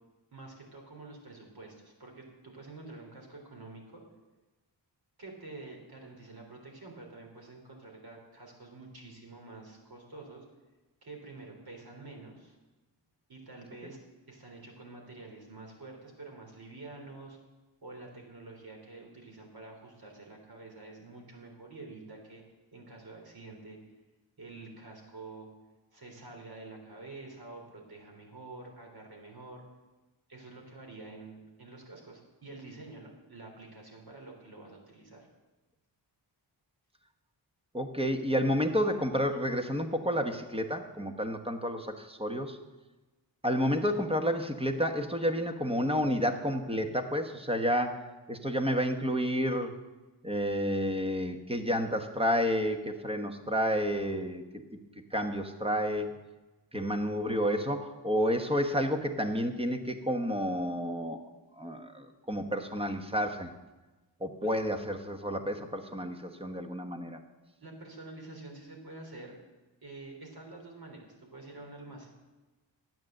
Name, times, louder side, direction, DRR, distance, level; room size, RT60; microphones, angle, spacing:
voice 1, 0.3-4.0 5.2-10.4 11.0-12.6 13.3-14.0 14.3-17.4 17.8-22.4 22.7-23.8 24.4-25.5 25.9-29.6 30.3-35.3 64.4-64.5 67.6-69.4 69.8-72.1, right 3 dB, 55° right, 1 dB, 3.7 m, -48 dB
voice 2, 37.7-42.6 43.4-49.7 50.2-54.4 55.1-56.1 56.7-61.2 61.6-63.5 64.2-67.2, equal, 15° right, 6 dB, 1.2 m, -30 dB
13.0 x 9.2 x 7.8 m, 1.2 s
wide cardioid pair, 125°, 45 cm